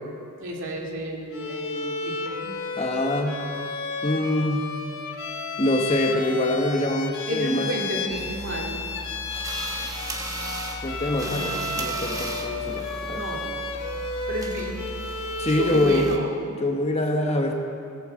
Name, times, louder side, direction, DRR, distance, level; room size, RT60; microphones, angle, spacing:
voice 1, 0.4-2.5 7.3-8.8 11.2-11.6 13.1-13.8 14.3-14.8 15.5-16.3, right 1 dB, 60° right, -1 dB, 2.4 m, -32 dB
Bowed string instrument, 1.3-16.2, left 4 dB, 60° left, 1.3 m, -33 dB
voice 2, 2.8-3.4 4.0-4.7 5.6-7.7 10.8-13.2 15.4-16.1 16.6-17.5, left 1 dB, 30° left, 3 dB, 1.2 m, -24 dB
sound 1, 8.1-16.2, right 1 dB, 15° right, 1.0 m, -36 dB
18.5 x 8.8 x 7.5 m, 2.5 s
head